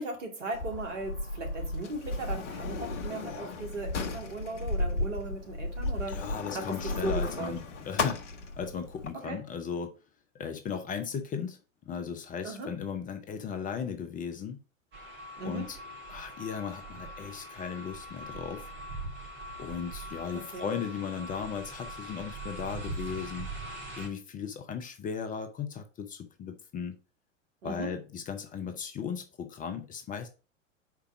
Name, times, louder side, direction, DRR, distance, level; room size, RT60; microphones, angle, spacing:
voice 1, 0.0-6.2 6.5-6.7 7.0-7.5 9.1-9.4 12.4-12.7 15.4-15.7 20.3-20.7 27.6-27.9, right 2 dB, 65° right, 2.4 m, -37 dB
Sliding door, 0.5-9.1, left 2 dB, 65° left, 1.1 m, -34 dB
voice 2, 6.1-8.2 8.6-9.9 10.3-11.6 11.9-14.6 15.4-15.8 16.1-18.7 19.6-23.5 24.0-26.9 27.6-30.3, left 7 dB, 20° left, 0.7 m, -36 dB
sound 1, 14.9-24.1, right 1 dB, 30° right, 2.9 m, -42 dB
4.9 x 4.6 x 5.9 m
figure-of-eight pair, 90°, 39 cm